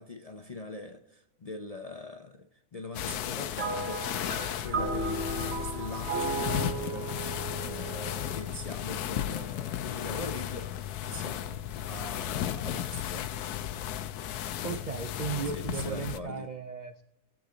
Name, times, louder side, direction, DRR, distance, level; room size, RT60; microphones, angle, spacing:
voice 1, 0.0-10.7 11.0-13.4 15.4-16.5, left 2 dB, 45° left, 0.5 m, -42 dB
sound 1, 2.9-16.2, left 11 dB, 85° left, 1.1 m, -35 dB
sound 2, 3.6-9.1, right 4 dB, 50° right, 1.0 m, -35 dB
voice 2, 14.6-17.0, right 6 dB, 70° right, 0.4 m, -36 dB
20.0 x 7.4 x 3.9 m
omnidirectional pair, 1.6 m